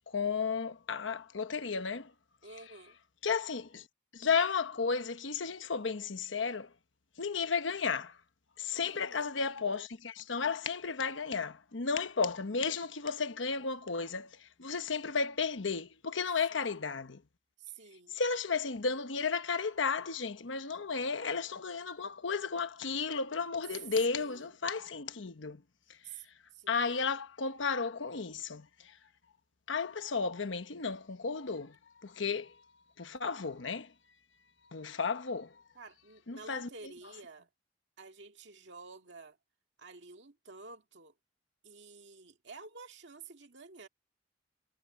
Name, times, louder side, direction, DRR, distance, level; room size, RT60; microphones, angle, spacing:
voice 1, 0.1-2.1 3.2-3.8 4.1-6.7 7.2-8.1 8.6-17.2 18.1-25.6 26.7-28.7 29.7-31.7 32.0-32.5 33.0-33.9 34.7-35.5 36.3-36.7, left 5 dB, 85° left, 1.1 m, -33 dB
voice 2, 2.4-3.0 8.7-9.3 16.5-16.8 17.6-18.2 24.1-24.5 26.0-26.2 26.5-26.9 35.7-37.5 38.0-39.4 39.8-41.1 41.6-43.9, right 4 dB, 70° right, 2.1 m, -51 dB
head